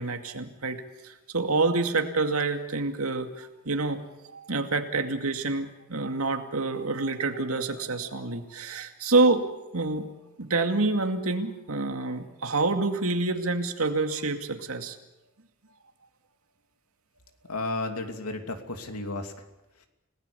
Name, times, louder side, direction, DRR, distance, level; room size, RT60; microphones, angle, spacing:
voice 1, 0.0-4.0 4.3-9.5 9.7-10.1 10.4-15.0, right 3 dB, 75° right, 6 dB, 2.3 m, -27 dB
voice 2, 17.5-19.3, left 2 dB, 85° left, 5 dB, 2.9 m, -33 dB
30.0 x 18.5 x 7.0 m, 0.99 s
head